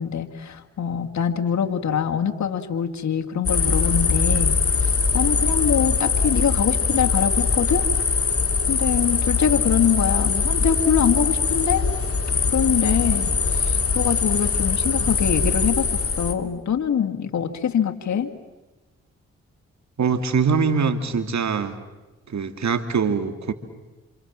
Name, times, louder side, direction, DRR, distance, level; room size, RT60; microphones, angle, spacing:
voice 1, 0.0-7.9 8.7-11.9 12.5-18.3, left 8 dB, 75° left, 3 dB, 2.0 m, -24 dB
sound 1, 3.5-16.3, left 5 dB, 50° left, 2.7 m, -22 dB
voice 2, 20.0-21.8 22.3-23.5, right 5 dB, 70° right, 9 dB, 2.5 m, -23 dB
28.5 x 27.5 x 7.5 m, 1.2 s
cardioid pair, 55°, 29 cm